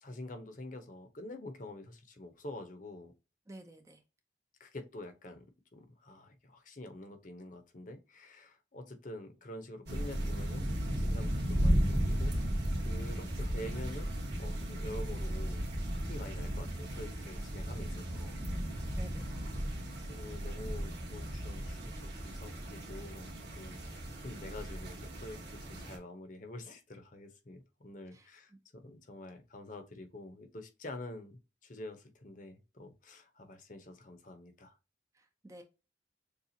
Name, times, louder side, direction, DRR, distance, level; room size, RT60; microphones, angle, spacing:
voice 1, 0.0-3.1 4.6-5.4 5.7-12.4 12.8-14.1 14.4-18.9 19.2-19.6 20.1-23.8 24.2-34.8, left 1 dB, 45° left, 0.8 m, -47 dB
voice 2, 3.5-4.0 18.9-19.3 28.1-28.6 35.1-35.6, right 1 dB, 15° right, 0.5 m, -52 dB
sound 1, 9.9-26.0, equal, 60° right, 1.8 m, -35 dB
6.8 x 2.4 x 2.8 m
head